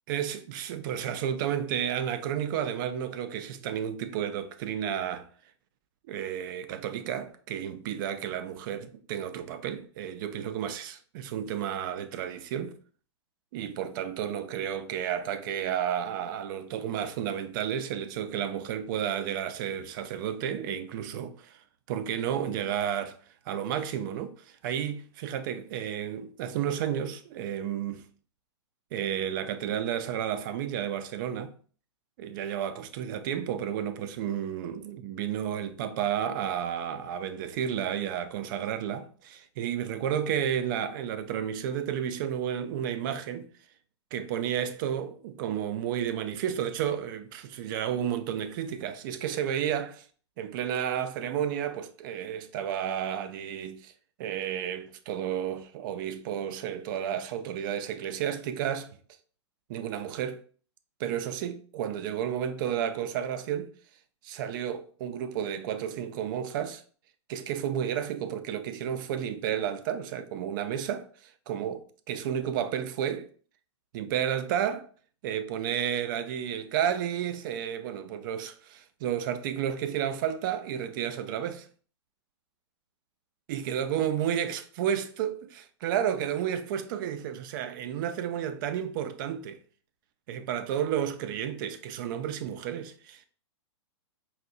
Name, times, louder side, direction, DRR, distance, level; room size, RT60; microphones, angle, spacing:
voice 1, 0.1-5.3 6.1-12.8 13.5-21.6 21.9-23.2 23.5-28.0 28.9-31.5 32.2-43.5 44.1-50.1 50.4-53.9 54.2-58.9 59.7-60.4 61.0-63.7 64.2-66.8 67.3-73.3 73.9-74.9 75.2-81.7 83.5-89.6 90.3-93.3, right 9 dB, 45° right, 0.4 m, -32 dB
4.1 x 2.6 x 2.4 m
hypercardioid pair, 120°, 15 cm